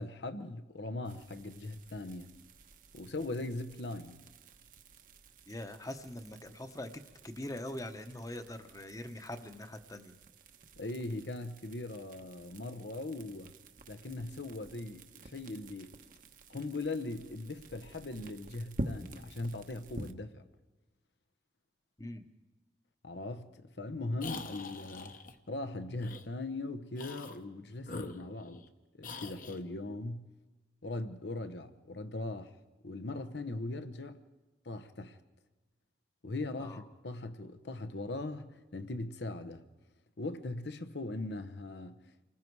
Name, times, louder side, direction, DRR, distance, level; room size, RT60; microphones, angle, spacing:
voice 1, 0.0-2.3 2.9-4.2 10.8-13.6 13.9-16.0 16.5-20.4 23.0-25.1 25.5-28.6 29.0-30.3 30.8-32.5 32.8-34.2 34.6-35.2 36.2-39.6 40.2-42.0, left 2 dB, 80° left, 1.0 m, -40 dB
sound 1, 1.0-20.1, right 1 dB, 50° right, 1.0 m, -49 dB
voice 2, 5.5-10.1 22.0-22.3 36.6-36.8, left 1 dB, 20° left, 0.9 m, -43 dB
sound 2, 24.2-25.3 26.0-26.3 26.9-27.4 27.8-28.7 29.0-29.6, left 3 dB, 50° left, 1.1 m, -44 dB
28.5 x 20.0 x 4.7 m
head